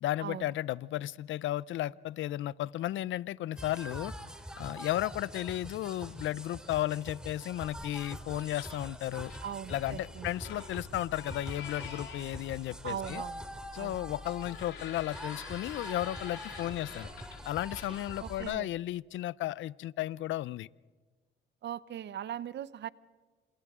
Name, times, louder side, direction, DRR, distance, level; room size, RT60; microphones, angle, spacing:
voice 1, 0.0-4.1 4.6-9.3 9.7-13.2 13.7-17.1 17.5-20.7, left 14 dB, 75° left, 21 dB, 0.5 m, -34 dB
sound 1, 3.6-18.5, equal, 5° right, 2.5 m, -45 dB
sound 2, 7.7-18.4, left 5 dB, 90° left, 7.5 m, -48 dB
voice 2, 9.4-10.3 12.8-14.0 18.2-18.7 21.6-22.9, right 10 dB, 60° right, 18 dB, 0.8 m, -40 dB
28.5 x 27.0 x 3.7 m, 1.4 s
cardioid pair, 90°, 20 cm